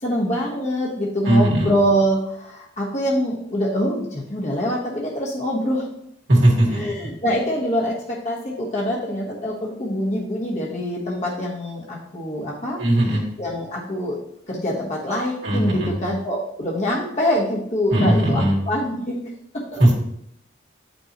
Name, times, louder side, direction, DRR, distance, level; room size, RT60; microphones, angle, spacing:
voice 1, 0.0-5.9 6.6-14.2 14.5-19.2 19.5-19.8, equal, 35° left, -4 dB, 1.2 m, -25 dB
voice 2, 1.3-1.7 6.3-6.8 12.8-13.2 15.4-16.0 17.9-18.6 19.8-19.9, right 1 dB, 65° right, -3 dB, 1.9 m, -18 dB
8.1 x 5.4 x 3.0 m, 0.74 s
head